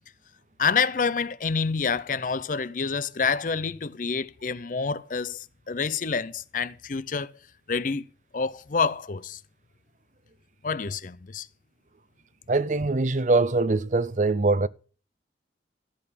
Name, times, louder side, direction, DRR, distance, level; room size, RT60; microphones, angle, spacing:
voice 1, 0.6-7.3 7.7-8.0 8.3-9.4 10.6-11.5, left 5 dB, 45° left, 0.5 m, -27 dB
voice 2, 12.5-14.7, right 3 dB, 40° right, 0.5 m, -23 dB
14.0 x 8.2 x 5.8 m
head